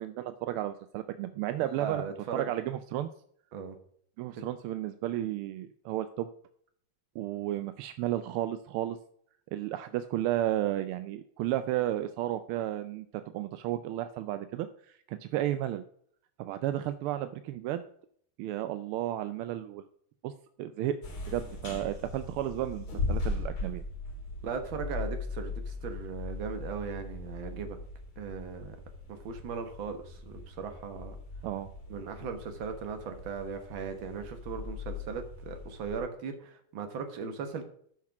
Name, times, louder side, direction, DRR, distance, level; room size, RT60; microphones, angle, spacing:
voice 1, 0.0-2.0 2.3-3.1 4.2-6.3 7.2-9.0 9.5-13.1 13.3-14.7 15.1-15.8 16.4-17.9 18.4-19.8 20.2-20.3 20.6-21.0 21.3-23.8 31.4-31.7, right 13 dB, 85° right, 11 dB, 1.5 m, -33 dB
voice 2, 1.6-2.5 3.5-3.8 24.4-27.8 28.2-28.8 29.1-31.2 31.9-37.7, right 5 dB, 65° right, 7 dB, 1.9 m, -38 dB
sound 1, 21.0-36.0, left 3 dB, 70° left, 2.8 m, -39 dB
7.4 x 5.9 x 5.9 m, 0.63 s
omnidirectional pair, 2.3 m